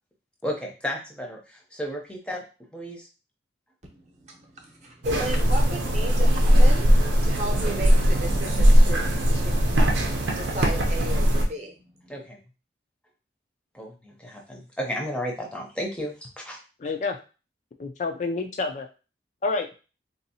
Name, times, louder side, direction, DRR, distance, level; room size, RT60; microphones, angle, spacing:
voice 1, 0.4-2.4 2.7-3.1 12.1-12.4 13.7-16.6, equal, 5° left, 0 dB, 0.6 m, -33 dB
voice 2, 4.0-9.1 9.3-9.5 10.3-11.8, right 1 dB, 40° right, 2 dB, 0.8 m, -35 dB
sound 1, 5.0-11.4, equal, 85° right, 0.7 m, -20 dB
voice 3, 16.8-17.2 17.8-18.9 19.4-19.7, left 3 dB, 40° left, 4 dB, 0.3 m, -28 dB
3.8 x 2.7 x 2.7 m, 0.33 s
head